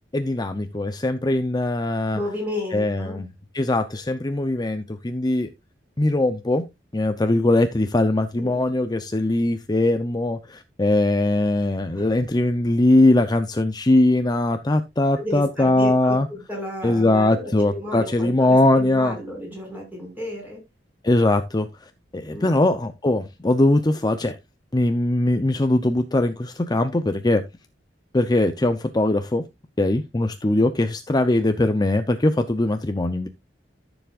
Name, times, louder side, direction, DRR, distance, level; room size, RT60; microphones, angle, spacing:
voice 1, 0.1-2.2 2.7-3.3 3.5-5.5 6.0-6.6 6.9-16.3 16.8-19.2 21.0-21.7 22.1-24.4 24.7-27.4 28.1-29.4 29.8-33.3, left 1 dB, 25° left, 0.7 m, -21 dB
voice 2, 2.1-3.2 8.3-8.6 11.9-12.1 15.2-20.6 22.2-22.6 31.6-31.7, left 1 dB, 10° right, 5.8 m, -33 dB
14.0 x 7.1 x 2.5 m
head